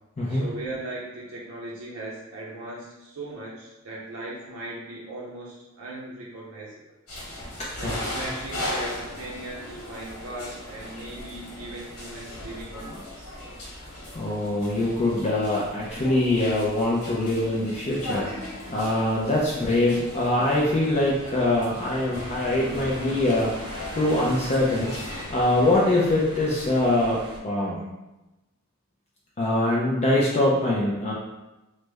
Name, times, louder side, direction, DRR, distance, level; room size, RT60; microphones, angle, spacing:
voice 1, 0.3-6.9 7.8-13.3, right 2 dB, 70° right, -5 dB, 0.5 m, -38 dB
sound 1, 7.1-25.2, left 1 dB, 70° left, 1.1 m, -38 dB
voice 2, 7.6-7.9 13.8-23.5 24.0-24.9 25.3-27.8 29.4-31.1, left 1 dB, 30° left, -5 dB, 0.4 m, -23 dB
sound 2, 22.1-27.4, equal, 20° right, 0.6 m, -40 dB
3.1 x 2.0 x 3.3 m, 1.0 s
head